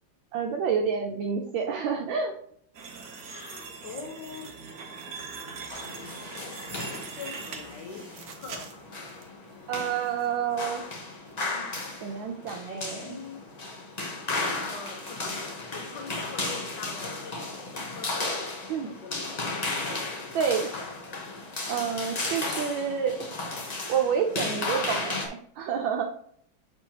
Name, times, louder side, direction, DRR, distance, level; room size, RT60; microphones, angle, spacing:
voice 1, 0.3-2.4 9.7-10.8 12.0-13.2 18.7-18.9 20.3-20.7 21.7-23.3 23.9-26.0, right 7 dB, 80° right, 2 dB, 1.4 m, -28 dB
sound 1, 2.7-9.2 9.7-10.3 10.6-10.8 11.3-11.4, right 4 dB, 60° right, 1.2 m, -41 dB
voice 2, 3.2-4.5 6.7-8.1 8.4-8.8 12.6-13.4 14.6-19.6, left 5 dB, 65° left, 3 dB, 1.5 m, -43 dB
sound 2, 5.7-25.3, left 3 dB, 45° left, 0.5 m, -35 dB
7.6 x 4.4 x 2.8 m, 0.64 s
omnidirectional pair, 2.1 m